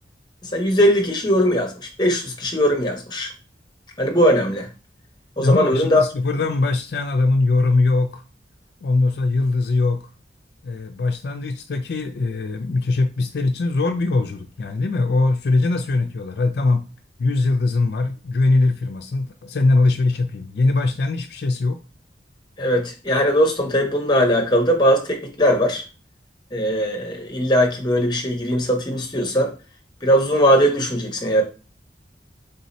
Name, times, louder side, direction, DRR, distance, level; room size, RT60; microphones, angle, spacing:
voice 1, 0.4-3.3 4.0-4.7 5.4-6.0 22.6-25.8 26.5-29.5 30.0-31.4, equal, 25° left, 0.9 m, -19 dB
voice 2, 5.4-8.2 8.8-10.0 10.6-16.8 17.2-21.8, left 3 dB, 65° left, 0.4 m, -21 dB
3.9 x 2.8 x 4.0 m
head